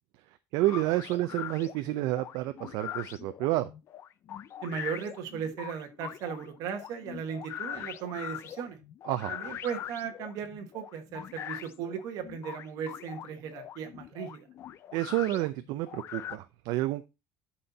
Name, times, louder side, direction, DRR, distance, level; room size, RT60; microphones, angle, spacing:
voice 1, 0.5-3.7 9.1-9.3 14.9-17.0, right 16 dB, 80° right, 10 dB, 0.6 m, -29 dB
sound 1, 0.6-16.4, left 11 dB, 40° left, 0.4 m, -42 dB
voice 2, 4.6-8.8 9.3-14.5, right 7 dB, 60° right, 5 dB, 1.5 m, -37 dB
11.0 x 4.4 x 4.0 m, 0.27 s
cardioid pair, 175°, 7 cm